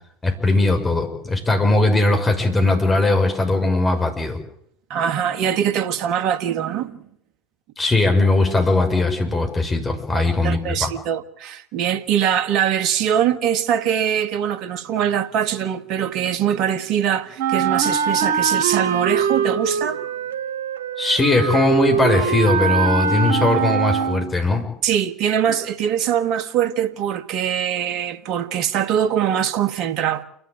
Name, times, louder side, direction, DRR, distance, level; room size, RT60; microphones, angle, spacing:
voice 1, 0.2-4.4 7.8-10.9 21.0-24.7, left 2 dB, 20° left, 6.1 m, -19 dB
voice 2, 4.9-7.0 10.1-20.0 24.8-30.2, right 9 dB, 50° right, 1.7 m, -22 dB
Wind instrument woodwind instrument, 17.4-24.4, right 7 dB, 70° right, 3.0 m, -22 dB
29.0 x 12.0 x 8.9 m
hypercardioid pair, 75°, 0 cm